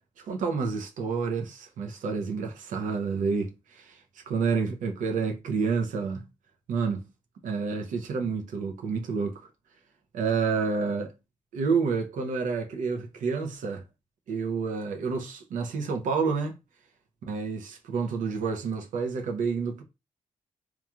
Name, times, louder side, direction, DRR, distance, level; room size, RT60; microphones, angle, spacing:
voice 1, 0.2-4.0 4.3-6.3 6.7-7.0 7.4-9.4 10.1-11.1 11.5-13.8 14.3-16.6 17.3-19.8, right 5 dB, 80° right, 0.6 m, -29 dB
3.0 x 2.3 x 2.3 m
cardioid pair, 95°, 13 cm